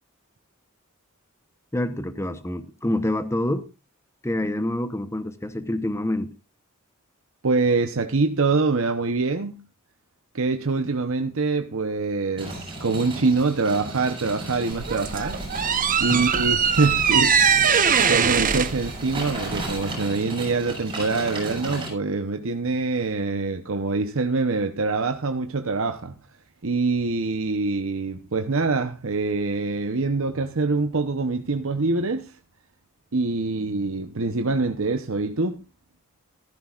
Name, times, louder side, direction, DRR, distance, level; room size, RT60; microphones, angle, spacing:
voice 1, 1.7-3.7 4.2-6.3 16.1-16.2, left 1 dB, 15° left, 0.9 m, -27 dB
voice 2, 7.4-9.6 10.3-15.4 16.0-17.7 18.1-26.2 26.6-32.4 33.1-35.6, right 3 dB, 70° right, 0.9 m, -25 dB
sound 1, 12.4-21.9, right 2 dB, 25° right, 7.2 m, -35 dB
sound 2, 14.7-19.9, right 7 dB, 40° right, 1.1 m, -21 dB
15.5 x 14.5 x 2.5 m
head